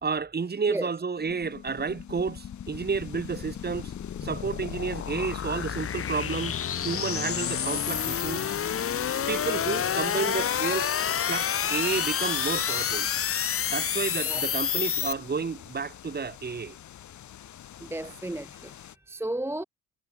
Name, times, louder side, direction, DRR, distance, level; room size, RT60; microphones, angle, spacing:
voice 1, 0.0-3.9 4.2-8.4 9.3-11.0 11.3-13.1 13.7-16.8 18.0-18.1, right 5 dB, 35° right, 3.2 m, -31 dB
sound 1, 1.2-15.1, left 8 dB, 50° left, 1.4 m, -30 dB
sound 2, 1.4-19.0, left 11 dB, 70° left, 7.2 m, -45 dB
voice 2, 17.8-19.6, right 1 dB, 10° right, 0.7 m, -33 dB
cardioid pair, 90°, 30 cm